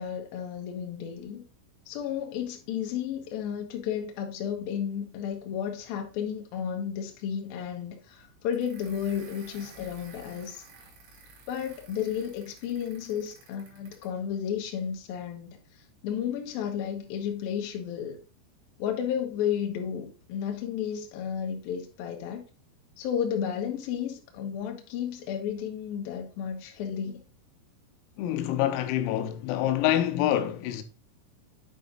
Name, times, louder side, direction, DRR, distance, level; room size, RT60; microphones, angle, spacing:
voice 1, 0.0-1.4 1.9-10.6 11.5-15.6 16.0-18.2 18.8-22.4 23.0-27.2, left 8 dB, 75° left, 2.3 m, -32 dB
sound 1, 8.5-14.2, right 3 dB, 65° right, 5.1 m, -52 dB
voice 2, 28.2-30.8, left 12 dB, 90° left, 3.6 m, -26 dB
9.1 x 4.2 x 3.8 m
omnidirectional pair, 6.0 m